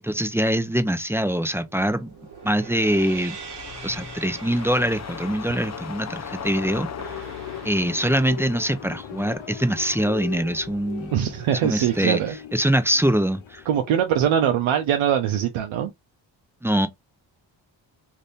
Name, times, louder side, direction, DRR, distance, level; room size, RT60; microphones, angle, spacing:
voice 1, 0.0-2.1 2.4-3.4 3.8-7.2 7.6-11.1 11.6-12.2 12.5-13.6 16.6-16.9, right 1 dB, 5° right, 0.5 m, -23 dB
sound 1, 1.4-12.3, right 6 dB, 60° right, 1.1 m, -44 dB
sound 2, 2.3-10.7 11.1-11.2, left 6 dB, 35° left, 0.6 m, -39 dB
sound 3, 6.2-14.8, left 10 dB, 80° left, 0.8 m, -40 dB
voice 2, 11.1-12.3 13.7-15.9, right 9 dB, 85° right, 0.6 m, -22 dB
2.6 x 2.6 x 3.4 m
cardioid pair, 60°, 46 cm